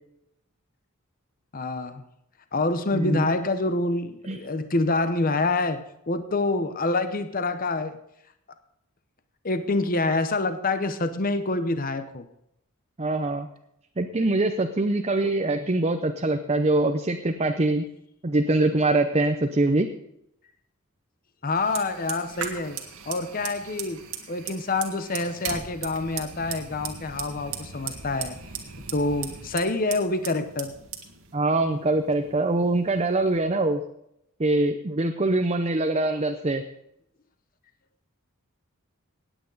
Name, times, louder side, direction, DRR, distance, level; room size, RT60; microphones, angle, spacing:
voice 1, 1.5-2.0 2.5-5.8 6.1-8.0 9.4-12.3 15.2-15.3 21.4-22.8 23.1-24.0 24.3-28.4 28.9-30.7, left 2 dB, 40° left, 10 dB, 0.8 m, -26 dB
voice 2, 2.9-3.3 4.3-4.4 13.0-13.5 14.0-17.9 18.2-19.9 31.3-33.8 34.4-36.6, right 2 dB, 30° right, 6 dB, 0.6 m, -23 dB
Fire, 21.5-33.4, right 7 dB, 85° right, 1.9 m, -38 dB
17.5 x 9.1 x 4.0 m, 0.78 s
head